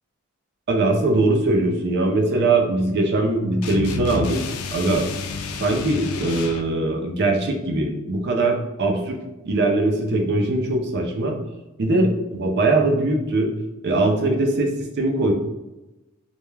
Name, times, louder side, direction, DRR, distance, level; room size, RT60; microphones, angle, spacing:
voice 1, 0.7-4.4 4.7-5.1 5.6-9.2 9.4-11.4 11.8-13.5 13.8-15.3, right 2 dB, 55° right, 3 dB, 0.4 m, -21 dB
sound 1, 3.6-6.7, left 4 dB, 85° left, 0.3 m, -30 dB
2.2 x 2.2 x 3.1 m, 1.0 s
head